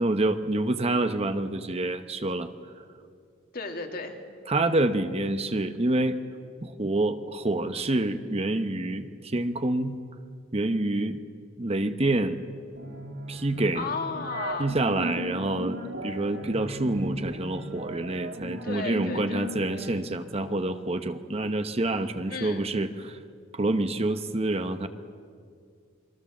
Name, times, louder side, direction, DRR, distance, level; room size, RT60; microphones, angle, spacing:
voice 1, 0.0-2.5 4.5-6.2 6.6-10.0 10.5-11.2 11.6-12.4 13.3-13.8 14.6-23.2 23.5-24.9, right 2 dB, 35° right, 9 dB, 1.0 m, -27 dB
voice 2, 3.5-4.2 13.7-14.7 18.6-19.5 19.8-20.1 22.3-22.7, left 4 dB, 50° left, 4 dB, 2.5 m, -34 dB
sound 1, 12.7-19.9, right 1 dB, 70° right, 2.7 m, -36 dB
28.5 x 22.5 x 7.3 m, 2.2 s
head